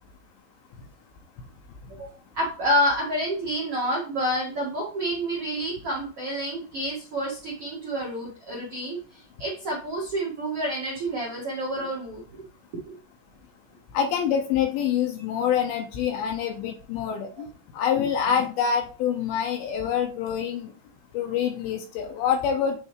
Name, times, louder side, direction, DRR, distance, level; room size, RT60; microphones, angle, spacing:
voice 1, 2.3-9.0 9.4-12.4 12.8-12.9 17.4-17.5, equal, 75° right, -5 dB, 1.3 m, -28 dB
voice 2, 13.9-17.5 17.7-20.7 21.1-22.8, left 8 dB, 80° left, 3 dB, 2.2 m, -26 dB
9.2 x 3.3 x 3.1 m, 0.37 s
omnidirectional pair, 5.4 m